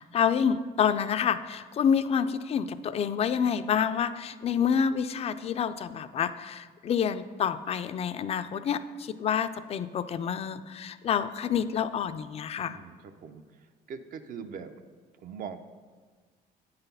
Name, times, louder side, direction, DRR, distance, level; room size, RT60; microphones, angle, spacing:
voice 1, 0.0-12.8, left 7 dB, 40° left, 12 dB, 0.3 m, -28 dB
voice 2, 12.6-13.4 13.9-14.7 15.2-15.6, right 6 dB, 55° right, 9 dB, 0.6 m, -41 dB
8.8 x 4.0 x 5.5 m, 1.5 s
cardioid pair, 110°, 17 cm